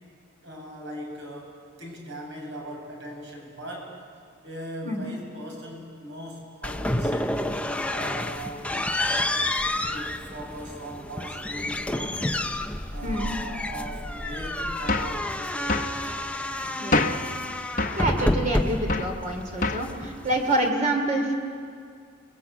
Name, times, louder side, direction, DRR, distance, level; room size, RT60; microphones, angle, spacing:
voice 1, 0.4-4.0 4.4-7.4 7.9-8.8 9.1-12.4 12.9-16.1, right 1 dB, 60° right, 0 dB, 7.4 m, -40 dB
sound 1, 6.6-20.7, left 1 dB, 5° left, 0.8 m, -29 dB
voice 2, 13.0-13.3 16.8-17.1 18.0-21.3, right 1 dB, 40° right, 3 dB, 3.1 m, -27 dB
sound 2, 14.9-15.2 15.7-16.0 16.9-17.3 17.8-18.1 18.9-19.2 19.6-19.9, left 2 dB, 40° left, 1.1 m, -25 dB
30.0 x 22.0 x 8.2 m, 2.2 s
head